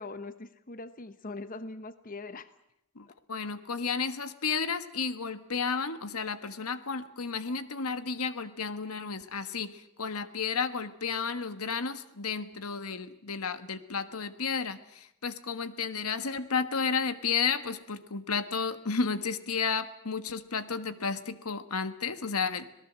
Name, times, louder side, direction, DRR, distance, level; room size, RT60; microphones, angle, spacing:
voice 1, 0.0-2.5 3.1-3.2, left 3 dB, 40° left, 12 dB, 1.0 m, -41 dB
voice 2, 2.9-22.7, left 5 dB, 90° left, 11 dB, 1.4 m, -32 dB
26.5 x 19.0 x 7.6 m, 0.80 s
head